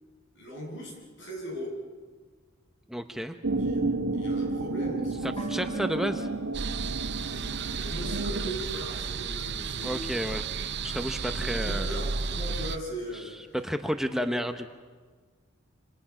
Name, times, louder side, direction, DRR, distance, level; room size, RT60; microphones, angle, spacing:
voice 1, 0.3-1.8 3.5-3.8 4.1-5.8 7.1-10.3 11.0-13.6 13.9-14.4, equal, 65° left, 0 dB, 7.5 m, -40 dB
voice 2, 2.9-3.3 5.4-6.3 9.8-10.4 10.8-12.1 13.5-14.7, equal, ahead, 6 dB, 0.8 m, -31 dB
sound 1, 3.4-8.5, right 2 dB, 80° right, 1.6 m, -31 dB
sound 2, 5.4-8.7 8.9-9.0, right 3 dB, 25° left, 3.5 m, -42 dB
sound 3, 6.5-12.8, right 5 dB, 60° right, 0.7 m, -33 dB
28.0 x 26.5 x 6.1 m, 1.5 s
head